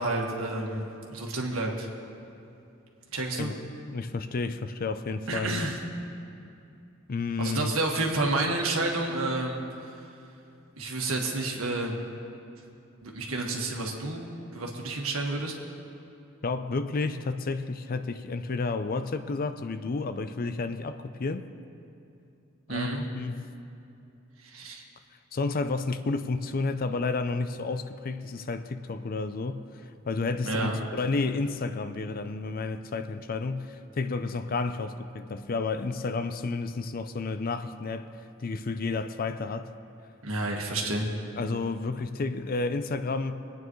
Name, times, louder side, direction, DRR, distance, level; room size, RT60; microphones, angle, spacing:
voice 1, 0.0-1.9 3.1-3.5 5.3-5.8 7.4-9.6 10.8-11.9 13.0-15.5 22.7-23.1 24.4-24.8 30.4-30.8 40.2-41.1, right 2 dB, 80° right, 0 dB, 1.7 m, -30 dB
voice 2, 3.9-5.7 7.1-7.7 16.4-21.4 22.7-23.5 25.3-38.1 38.4-39.7 41.4-43.3, left 3 dB, 45° left, 10 dB, 0.5 m, -31 dB
24.0 x 9.2 x 3.1 m, 2.7 s
head